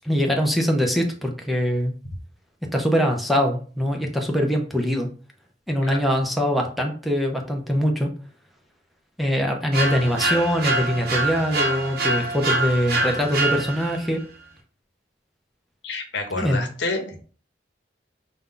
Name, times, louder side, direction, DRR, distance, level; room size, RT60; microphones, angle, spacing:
voice 1, 0.0-1.9 2.7-5.1 5.7-8.1 9.2-14.2 16.3-16.6, equal, ahead, 1 dB, 0.6 m, -23 dB
sound 1, 9.7-14.1, right 2 dB, 60° right, 0.8 m, -25 dB
voice 2, 15.8-17.2, left 3 dB, 75° left, 3 dB, 0.9 m, -29 dB
5.3 x 2.3 x 3.7 m, 0.41 s
head